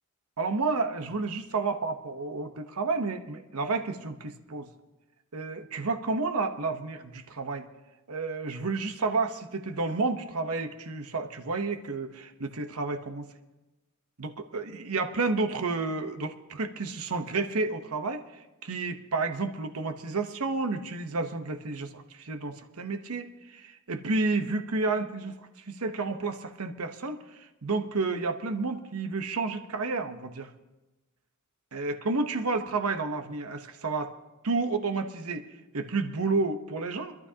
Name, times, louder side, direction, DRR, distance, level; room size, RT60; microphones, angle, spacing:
voice 1, 0.4-4.7 5.3-7.7 8.1-13.3 14.2-25.4 25.7-30.5 31.7-34.1 34.4-35.5 35.7-37.2, right 3 dB, 80° right, 7 dB, 1.0 m, -31 dB
25.5 x 12.0 x 2.8 m, 1.1 s
head